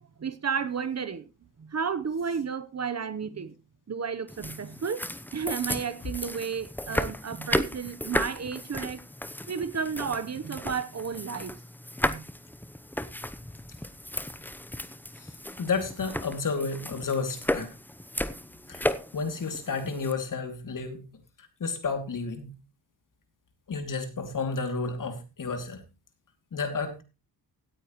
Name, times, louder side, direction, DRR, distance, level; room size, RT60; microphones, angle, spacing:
voice 1, 0.2-1.3 1.6-3.5 3.9-9.0 9.5-11.6 12.1-12.3, right 6 dB, 40° right, 1.0 m, -32 dB
sound 1, 4.3-20.1, left 1 dB, 5° left, 0.8 m, -34 dB
voice 2, 15.2-17.7 18.7-22.5 23.7-25.8 26.5-27.0, left 4 dB, 55° left, 2.7 m, -32 dB
17.0 x 9.3 x 3.1 m
cardioid pair, 85°, 39 cm